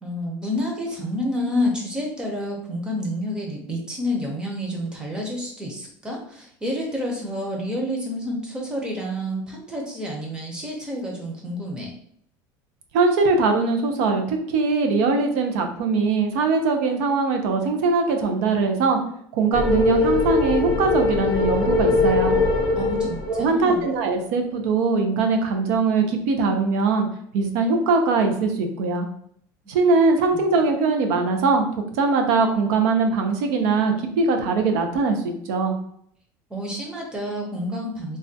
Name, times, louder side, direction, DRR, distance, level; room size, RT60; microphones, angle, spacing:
voice 1, 0.0-11.9 22.8-23.9 29.6-29.7 30.3-30.5 36.5-38.2, left 1 dB, 10° right, -1 dB, 0.6 m, -29 dB
voice 2, 12.9-19.0 19.3-22.4 23.3-27.1 27.3-29.1 29.7-35.8, right 4 dB, 85° right, 5 dB, 0.6 m, -21 dB
sound 1, 19.5-23.9, left 3 dB, 40° left, 0.6 m, -22 dB
3.3 x 2.2 x 2.7 m, 0.65 s
cardioid pair, 170°, 9 cm